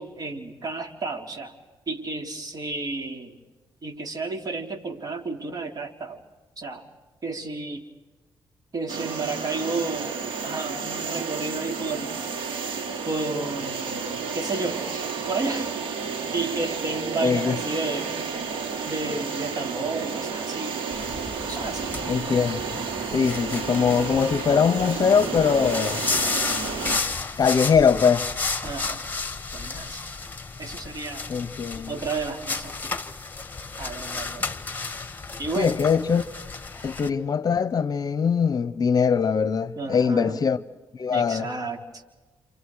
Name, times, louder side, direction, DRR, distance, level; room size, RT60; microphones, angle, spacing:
voice 1, 0.0-1.5 1.9-3.4 3.8-6.2 6.6-6.9 7.2-7.8 8.7-10.1 10.4-12.1 13.1-15.7 16.3-18.3 18.8-20.8 21.4-21.9 23.1-23.3 28.6-29.0 29.5-30.0 30.6-31.2 31.9-33.0 33.8-34.5 35.4-35.8 39.8-40.4 41.1-42.0, right 3 dB, 45° right, 3.6 m, -32 dB
sound 1, 8.9-27.0, right 5 dB, 85° right, 2.5 m, -31 dB
voice 2, 17.2-17.6 22.1-22.8 23.1-26.0 27.4-28.3 31.3-32.0 35.6-36.3 36.8-40.6 41.0-41.5, left 6 dB, 45° left, 0.9 m, -22 dB
sound 2, 20.9-37.1, left 4 dB, 20° left, 1.8 m, -32 dB
29.0 x 28.0 x 4.8 m
cardioid pair, 80°, 9 cm